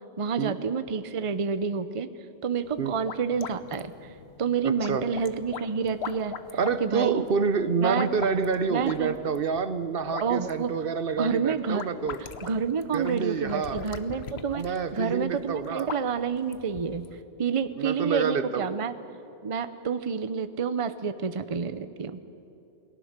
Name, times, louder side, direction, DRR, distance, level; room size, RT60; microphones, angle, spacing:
voice 1, 0.2-2.1 2.4-3.9 4.4-6.4 6.8-7.3 7.8-8.1 8.7-9.1 10.2-10.7 11.2-11.8 12.4-14.6 14.9-17.1 17.4-18.9 19.4-22.2, right 6 dB, 35° right, 11 dB, 0.7 m, -28 dB
sound 1, 2.6-17.2, left 7 dB, 75° left, 1.1 m, -42 dB
voice 2, 4.6-5.0 6.5-12.2 12.9-13.8 14.5-15.9 17.8-18.7, right 5 dB, 60° right, 12 dB, 0.9 m, -28 dB
sound 2, 12.2-12.5 13.1-14.0 14.7-15.5 16.2-16.5, equal, 20° left, 8.0 m, -60 dB
28.5 x 19.0 x 6.6 m, 2.8 s
omnidirectional pair, 1.1 m